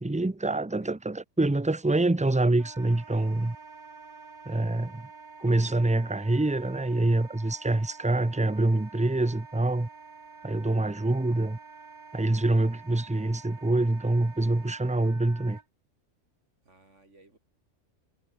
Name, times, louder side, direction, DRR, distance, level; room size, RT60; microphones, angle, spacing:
voice 1, 0.0-3.6 4.5-5.1 5.4-9.9 10.4-11.6 12.1-15.6, right 2 dB, 10° right, 0.3 m, -26 dB
Wind instrument woodwind instrument, 2.6-15.6, right 4 dB, 40° right, 1.5 m, -48 dB
voice 2, 16.6-17.4, right 2 dB, 75° right, 4.5 m, -59 dB
omnidirectional pair, 1.3 m